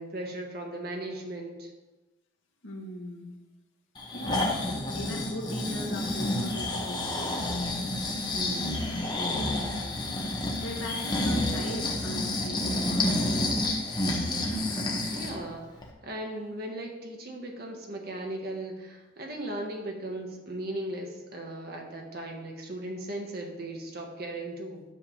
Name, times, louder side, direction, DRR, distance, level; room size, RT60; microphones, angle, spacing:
voice 1, 0.0-1.7 8.3-8.7 15.1-24.8, right 1 dB, 50° right, 1 dB, 1.5 m, -37 dB
voice 2, 2.6-3.4 4.1-4.5 4.9-7.5 9.2-10.0 10.5-13.6, left 1 dB, 80° left, 0 dB, 1.4 m, -40 dB
Breathing, 4.0-15.4 15.8-15.9, left 1 dB, 20° left, 1.2 m, -29 dB
10.5 x 3.6 x 7.1 m, 1.1 s
head